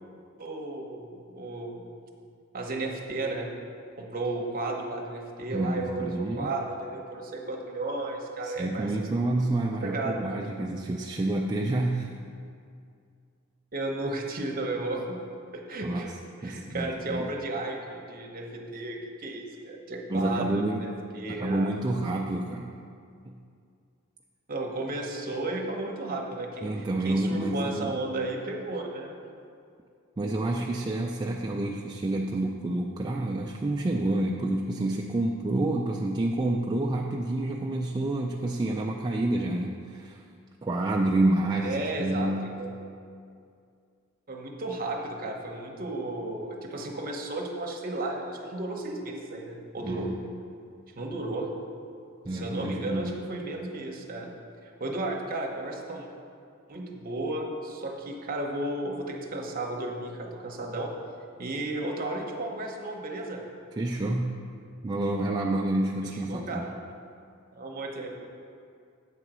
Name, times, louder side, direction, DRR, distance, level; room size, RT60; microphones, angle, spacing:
voice 1, 0.4-1.9 2.5-3.5 4.0-9.1 9.8-10.4 13.7-15.2 15.5-16.1 16.4-21.7 24.5-29.2 41.6-42.7 44.3-50.1 51.0-51.5 52.3-54.3 54.6-56.1 56.7-60.9 61.4-63.4 66.0-66.7 67.5-68.1, right 2 dB, 45° right, 1 dB, 0.9 m, -34 dB
voice 2, 5.5-6.5 8.4-12.1 15.8-16.1 16.4-17.3 20.1-20.8 21.3-22.7 23.2-23.4 26.6-28.0 30.2-40.2 40.6-42.6 49.8-50.2 52.3-53.1 63.8-64.4 64.8-66.7, right 1 dB, 20° right, -2 dB, 0.3 m, -28 dB
8.2 x 3.9 x 6.0 m, 2.3 s
head